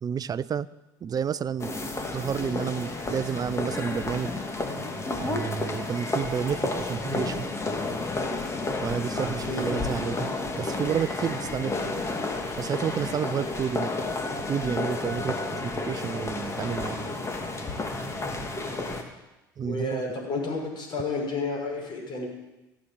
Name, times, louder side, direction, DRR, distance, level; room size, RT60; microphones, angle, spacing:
voice 1, 0.0-0.7 1.0-1.7 2.1-4.3 5.2-7.5 8.8-10.3 10.6-11.7 12.6-13.9 14.5-17.0 19.6-20.0, right 7 dB, 40° right, 17 dB, 0.7 m, -30 dB
sound 1, 1.6-19.0, left 2 dB, 25° left, 2.8 m, -31 dB
voice 2, 19.6-22.3, left 3 dB, 45° left, 0 dB, 6.6 m, -31 dB
15.5 x 8.7 x 8.9 m, 1.0 s
hypercardioid pair, 65°, 10 cm